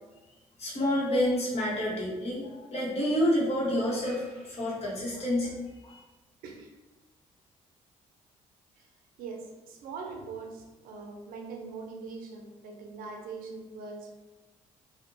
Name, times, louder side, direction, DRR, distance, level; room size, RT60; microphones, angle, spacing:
voice 1, 0.6-5.6 5.8-6.0, left 1 dB, 45° left, -5 dB, 1.0 m, -28 dB
voice 2, 9.2-14.2, right 4 dB, 80° right, 3 dB, 0.5 m, -42 dB
2.6 x 2.1 x 2.5 m, 1.1 s
supercardioid pair, 60°, 15 cm